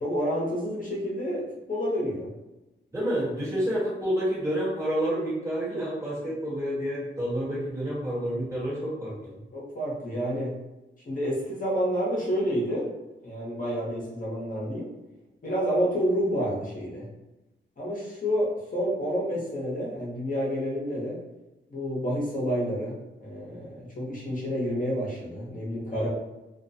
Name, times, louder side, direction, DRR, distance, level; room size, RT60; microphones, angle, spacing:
voice 1, 0.0-2.3 9.5-10.6 11.1-12.9 13.2-14.9 15.4-17.1 17.8-21.2 21.7-26.1, equal, 40° left, -5 dB, 0.8 m, -29 dB
voice 2, 2.9-9.4 25.8-26.1, equal, 15° right, -8 dB, 1.1 m, -29 dB
2.3 x 2.1 x 2.6 m, 1.0 s
wide cardioid pair, 110°, 20 cm